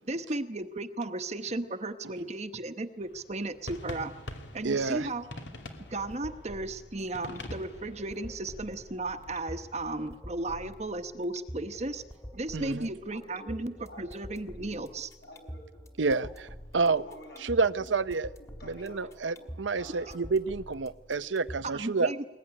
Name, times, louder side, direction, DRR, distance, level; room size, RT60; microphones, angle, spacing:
voice 1, 0.1-4.1 4.5-5.2 5.9-12.0 12.3-15.1 21.6-22.2, right 2 dB, 35° right, 9 dB, 1.0 m, -35 dB
sound 1, 3.0-10.0, left 1 dB, 75° left, 2.6 m, -46 dB
voice 2, 4.6-5.1 12.5-12.9 16.0-16.3 16.7-17.0 17.4-18.3 18.7-22.1, right 4 dB, 90° right, 14 dB, 0.7 m, -28 dB
sound 2, 5.7-21.7, equal, 15° left, 2.0 m, -47 dB
voice 3, 12.5-14.1 14.6-14.8 15.2-16.3 16.8-17.9 18.4-19.5 19.8-20.2 20.7-20.8, left 1 dB, 60° left, 2 dB, 6.6 m, -50 dB
21.5 x 20.5 x 9.9 m, 1.2 s
head